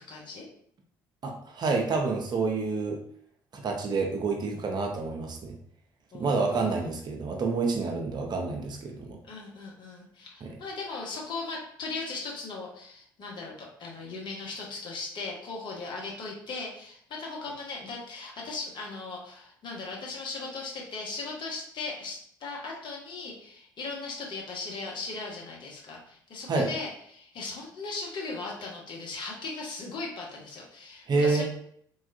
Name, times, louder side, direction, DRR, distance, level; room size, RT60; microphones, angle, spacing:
voice 1, 0.1-0.5 6.1-6.9 9.2-31.4, left 3 dB, 45° left, -2 dB, 1.0 m, -38 dB
voice 2, 1.2-3.0 3.5-5.5 6.2-9.2 10.4-10.5 26.5-26.7 31.1-31.4, right 4 dB, 40° right, 1 dB, 0.6 m, -28 dB
3.4 x 2.3 x 2.6 m, 0.65 s
figure-of-eight pair, 50°, 11 cm